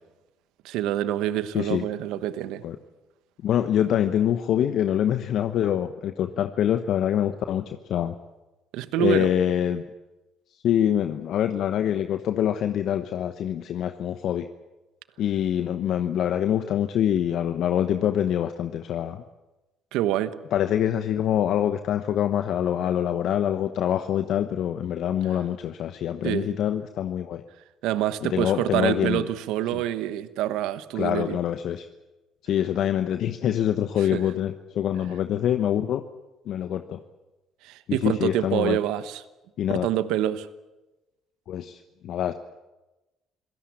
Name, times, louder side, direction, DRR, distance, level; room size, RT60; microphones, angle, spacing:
voice 1, 0.6-2.6 8.7-9.3 19.9-20.3 26.2-26.5 27.8-31.4 34.1-34.2 37.6-39.2 39.7-40.5, right 12 dB, 80° right, 1.2 m, -26 dB
voice 2, 1.5-1.8 2.6-2.8 3.4-8.1 9.0-9.8 10.6-14.5 15.2-19.2 20.5-27.4 28.2-29.2 29.7-29.8 30.9-31.9 32.4-36.0 36.5-37.0 37.9-38.8 39.6-39.9 41.5-42.3, left 10 dB, 65° left, 1.1 m, -25 dB
26.5 x 17.5 x 8.7 m
supercardioid pair, 60°, 0 cm